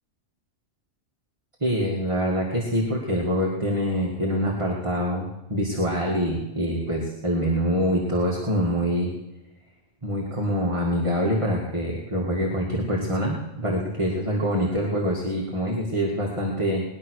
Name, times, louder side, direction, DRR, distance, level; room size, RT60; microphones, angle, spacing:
voice 1, 1.6-9.1 10.0-17.0, equal, 20° right, -3 dB, 2.2 m, -25 dB
20.0 x 10.5 x 6.5 m, 0.99 s
omnidirectional pair, 1.4 m